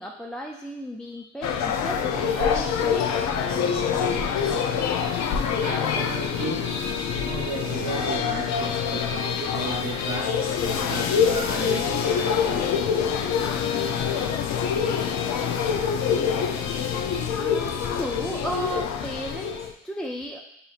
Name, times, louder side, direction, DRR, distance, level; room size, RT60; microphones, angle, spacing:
voice 1, 0.0-4.5 17.3-20.4, equal, ahead, -1 dB, 0.3 m, -35 dB
sound 1, 1.4-19.7, left 7 dB, 65° left, 0.5 m, -25 dB
voice 2, 5.6-12.7, right 2 dB, 80° right, -1 dB, 1.2 m, -34 dB
6.6 x 2.8 x 2.4 m, 0.78 s
cardioid pair, 90°, 30 cm